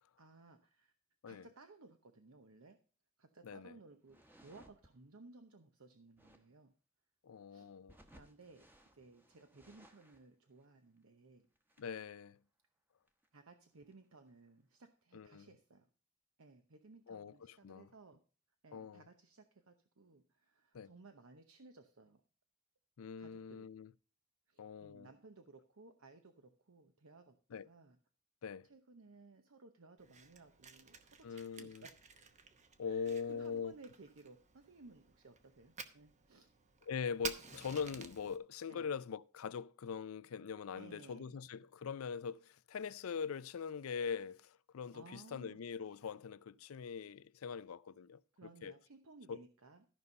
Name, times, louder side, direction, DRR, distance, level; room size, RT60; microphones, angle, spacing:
voice 1, 0.2-0.9 1.2-2.8 3.2-6.7 7.5-7.7 8.1-8.7 8.9-11.5 13.3-15.9 16.4-18.2 18.6-22.2 23.2-23.7 24.5-28.0 28.6-32.0 32.9-36.5 38.7-38.9 40.8-41.3 44.9-45.6 48.4-49.9, right 3 dB, 80° right, 0.9 m, -59 dB
voice 2, 3.4-3.8 7.2-8.0 11.8-12.4 15.1-15.5 17.1-17.9 18.7-19.0 20.7-20.9 23.0-23.9 24.6-25.1 27.5-27.7 28.4-28.7 31.2-31.8 32.8-33.7 36.9-48.2 48.6-48.7 49.3-49.4, left 6 dB, 85° left, 0.4 m, -42 dB
sound 1, 4.0-4.9 6.1-6.5 7.9-10.3 10.6-10.7 11.0-11.1 11.5-11.9 13.1-13.5 13.9-14.0 14.3-14.7, right 1 dB, 10° right, 1.0 m, -64 dB
Fire, 30.0-38.4, right 5 dB, 35° right, 0.9 m, -52 dB
13.5 x 5.5 x 5.4 m
head